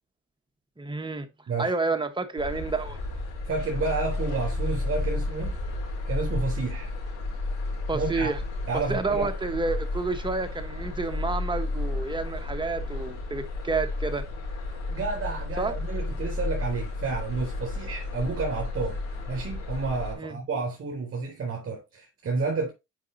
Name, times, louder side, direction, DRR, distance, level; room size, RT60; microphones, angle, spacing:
voice 1, 0.8-1.3 1.6-3.0 7.9-8.4 8.7-14.2 15.6-15.7 20.2-20.4, right 3 dB, 15° right, 1.3 m, -30 dB
sound 1, 2.4-20.1, left 2 dB, 90° left, 4.1 m, -32 dB
voice 2, 3.5-5.6 6.1-6.9 7.9-8.3 8.7-9.3 14.9-22.7, right 4 dB, 45° right, 4.0 m, -30 dB
9.4 x 5.2 x 2.8 m
cardioid pair, 90°, 30 cm